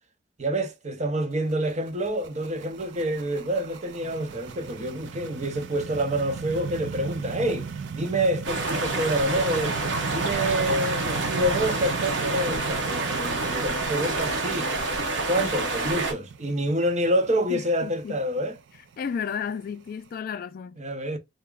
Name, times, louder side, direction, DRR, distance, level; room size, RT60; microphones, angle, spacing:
voice 1, 0.4-9.8 10.1-14.7 15.3-18.5 20.8-21.2, right 1 dB, 40° right, 0.7 m, -27 dB
sound 1, 1.3-20.1, right 6 dB, 70° right, 0.4 m, -37 dB
sound 2, 8.4-16.1, right 2 dB, 90° right, 0.9 m, -28 dB
voice 2, 17.5-18.2 19.0-20.8, left 7 dB, 50° left, 0.3 m, -33 dB
3.3 x 2.1 x 3.6 m
head